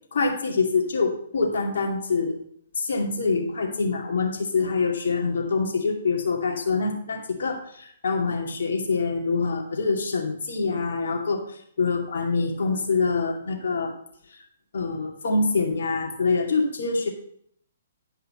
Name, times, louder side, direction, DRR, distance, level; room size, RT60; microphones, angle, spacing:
voice 1, 0.1-2.4 2.8-13.9 14.7-17.1, left 4 dB, 65° left, 0 dB, 2.5 m, -25 dB
10.5 x 5.5 x 5.7 m, 0.67 s
figure-of-eight pair, 125°, 0 cm